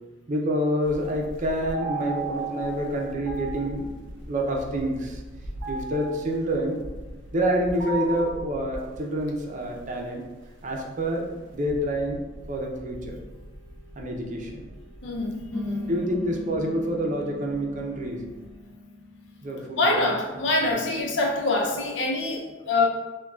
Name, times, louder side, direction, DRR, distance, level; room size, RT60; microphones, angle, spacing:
voice 1, 0.3-5.2 5.7-6.8 7.3-10.2 10.6-11.3 11.5-12.2 12.5-13.2 14.0-14.7 15.9-18.2 19.4-20.0 20.6-20.7, equal, 40° right, 1 dB, 0.6 m, -27 dB
sound 1, 0.8-18.5, right 2 dB, 85° right, 0.5 m, -38 dB
voice 2, 15.0-15.9 19.8-22.9, left 2 dB, 75° left, 0 dB, 0.6 m, -25 dB
sound 2, 15.5-20.5, left 2 dB, 5° left, 0.3 m, -38 dB
6.0 x 2.3 x 2.3 m, 1.2 s
head